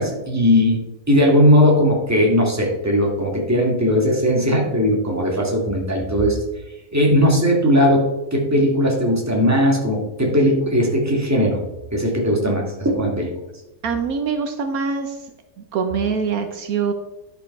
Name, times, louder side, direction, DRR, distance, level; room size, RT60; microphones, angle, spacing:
voice 1, 0.0-6.4 6.9-11.6 11.9-13.3, equal, 10° right, -1 dB, 1.9 m, -18 dB
voice 2, 13.8-15.3 15.7-16.9, right 5 dB, 70° right, 6 dB, 1.2 m, -24 dB
10.5 x 5.6 x 5.3 m, 1.0 s
omnidirectional pair, 1.6 m